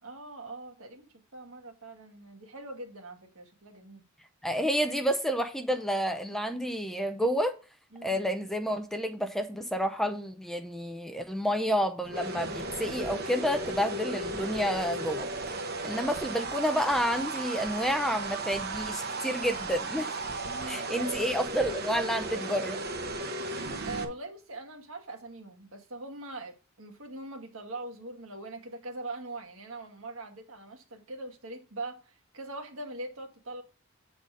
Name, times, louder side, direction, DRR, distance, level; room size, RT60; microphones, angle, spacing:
voice 1, 0.0-4.0 7.9-8.2 20.4-21.4 23.8-33.6, right 2 dB, 75° right, 1.7 m, -42 dB
voice 2, 4.4-7.5 8.0-15.3 15.8-20.1 20.7-22.8, equal, ahead, 0.6 m, -29 dB
sound 1, 12.0-24.0, right 2 dB, 50° right, 1.0 m, -35 dB
7.9 x 4.2 x 4.8 m
head